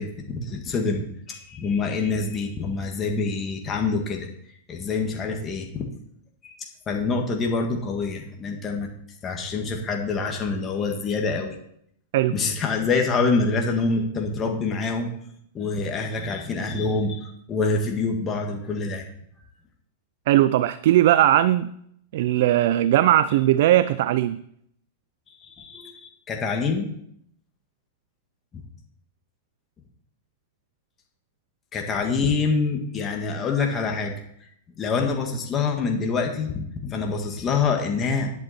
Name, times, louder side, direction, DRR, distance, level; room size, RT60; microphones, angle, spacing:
voice 1, 0.0-4.3 4.7-5.9 6.4-6.6 6.9-8.9 9.2-11.6 12.3-15.1 15.5-19.1 25.4-26.9 28.5-28.6 31.7-34.1 34.8-38.3, left 4 dB, 25° left, 2 dB, 1.7 m, -26 dB
voice 2, 20.3-21.7 22.1-24.4, right 13 dB, 65° right, 15 dB, 0.4 m, -19 dB
10.5 x 8.0 x 4.3 m, 0.72 s
hypercardioid pair, 125°, 0 cm